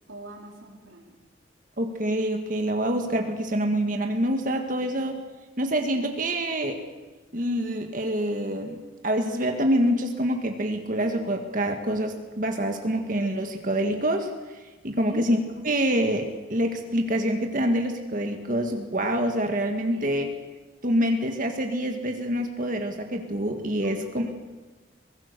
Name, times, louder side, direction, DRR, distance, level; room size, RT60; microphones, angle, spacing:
voice 1, 0.1-1.2 4.8-4.9 15.0-15.2 19.9-20.1 23.8-24.3, right 1 dB, 85° right, -1 dB, 4.3 m, -42 dB
voice 2, 1.8-5.2 5.6-6.8 7.3-8.8 9.0-15.4 15.6-20.3 20.8-24.3, equal, 45° right, 4 dB, 1.8 m, -26 dB
23.0 x 21.5 x 6.8 m, 1.2 s
head